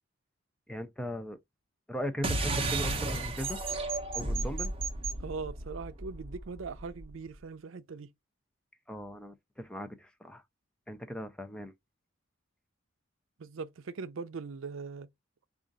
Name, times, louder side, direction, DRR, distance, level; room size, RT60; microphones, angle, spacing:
voice 1, 0.7-1.4 1.9-3.6 4.1-4.7 8.9-10.4 10.9-11.7, equal, 5° left, 0.5 m, -38 dB
sound 1, 2.2-7.1, right 2 dB, 30° right, 0.7 m, -33 dB
voice 2, 5.2-8.1 13.4-15.1, right 4 dB, 80° right, 0.5 m, -40 dB
4.9 x 2.4 x 3.9 m
head